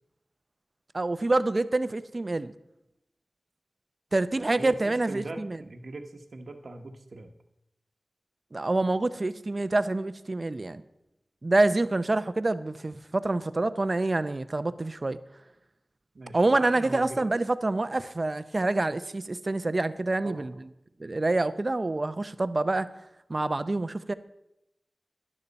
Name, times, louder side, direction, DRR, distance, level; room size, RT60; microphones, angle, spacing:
voice 1, 0.9-2.5 4.1-5.6 8.5-10.8 11.4-15.2 16.3-20.5 21.0-22.9 23.3-24.1, right 2 dB, 45° right, 13 dB, 0.6 m, -27 dB
voice 2, 4.5-7.3 16.1-17.3 20.2-20.5, right 2 dB, 75° right, 6 dB, 1.1 m, -40 dB
12.0 x 11.0 x 4.1 m, 0.86 s
wide cardioid pair, 50°, 0 cm